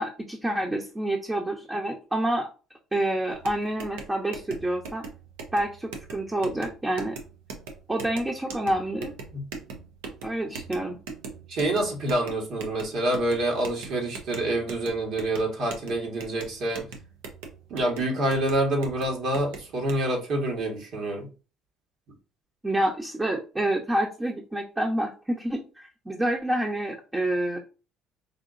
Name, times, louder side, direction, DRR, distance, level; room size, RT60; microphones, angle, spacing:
voice 1, 0.0-2.5 2.9-5.0 5.5-7.2 7.9-9.1 10.2-11.0 22.6-27.6, right 1 dB, 15° right, 0 dB, 0.9 m, -28 dB
sound 1, 3.3-20.0, right 4 dB, 85° right, 0.7 m, -42 dB
voice 2, 11.5-16.8 17.7-21.3, right 1 dB, 65° right, 1 dB, 1.6 m, -27 dB
4.9 x 2.6 x 2.6 m, 0.33 s
supercardioid pair, 70°, 0 cm